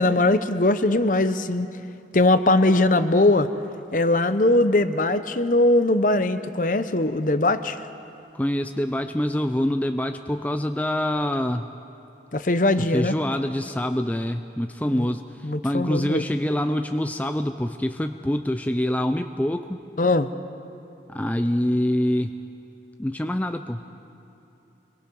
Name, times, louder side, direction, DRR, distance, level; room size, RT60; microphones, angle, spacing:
voice 1, 0.0-1.7 2.1-3.5 3.9-7.8 12.3-13.1 14.9-15.0 15.4-16.2 20.0-20.3, left 2 dB, 45° left, 11 dB, 0.8 m, -20 dB
voice 2, 8.3-11.7 12.8-19.8 21.1-22.3 23.0-23.8, left 1 dB, 10° left, 7 dB, 0.5 m, -25 dB
25.5 x 23.0 x 5.4 m, 3.0 s
head